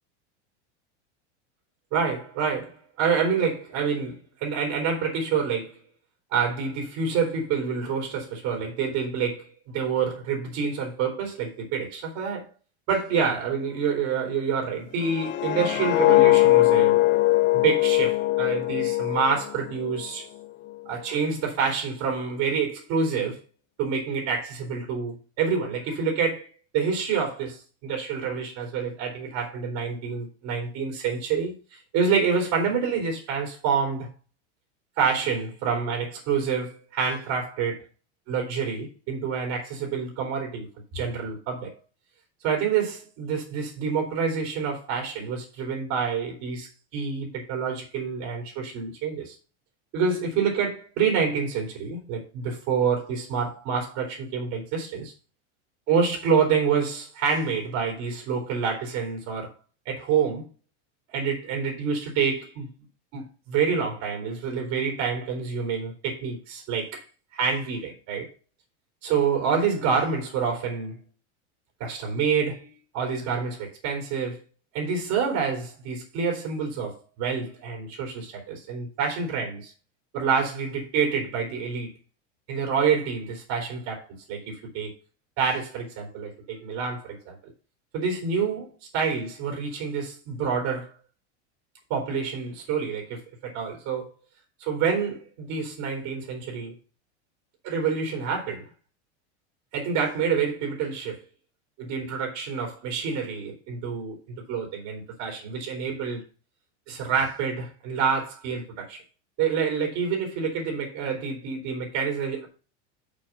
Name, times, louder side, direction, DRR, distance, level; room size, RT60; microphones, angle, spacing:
voice 1, 1.9-5.8 6.3-12.5 12.9-17.0 17.5-20.3 20.9-23.4 23.8-34.1 35.0-37.8 38.3-40.7 40.9-41.7 42.4-49.4 49.9-55.1 55.9-59.5 59.9-60.5 61.1-62.7 63.1-67.0 67.3-68.3 69.0-71.0 71.8-74.4 74.7-79.7 80.1-81.9 82.5-84.9 85.4-87.5 87.9-90.9 91.9-94.1 94.6-96.7 97.6-98.7 99.7-101.2 101.8-106.2 106.9-109.0 109.4-112.5, right 6 dB, 50° right, 3.6 m, -27 dB
sound 1, 15.0-20.1 20.4-20.7, left 19 dB, 30° left, 0.5 m, -21 dB
6.4 x 6.3 x 5.9 m
supercardioid pair, 125°, 36 cm